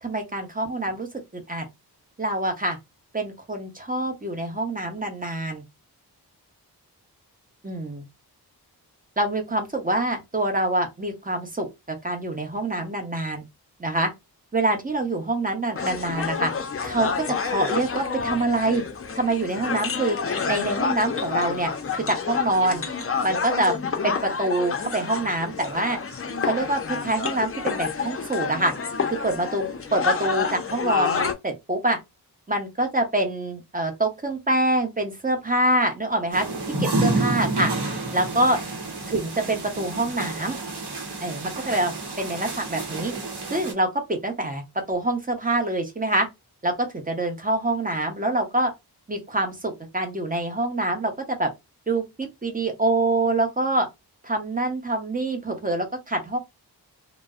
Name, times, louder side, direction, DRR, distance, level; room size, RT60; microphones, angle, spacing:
voice 1, 0.0-1.1 1.3-1.7 2.2-2.8 3.1-5.6 7.6-8.0 9.2-13.4 13.8-14.1 14.5-16.5 16.8-18.8 19.1-20.2 20.5-22.8 23.2-23.7 24.0-26.0 26.4-28.7 29.1-32.0 32.5-36.4 36.8-37.7 38.1-38.6 39.1-40.6 41.2-43.1 43.5-44.6 44.9-46.3 46.6-48.7 49.1-51.5 51.9-53.9 54.2-56.4, right 2 dB, 20° right, 0.7 m, -25 dB
sound 1, 15.8-31.3, left 5 dB, 35° left, 0.5 m, -29 dB
sound 2, 36.3-43.7, right 2 dB, 80° right, 0.9 m, -29 dB
2.5 x 2.1 x 2.3 m
wide cardioid pair, 70°, 40 cm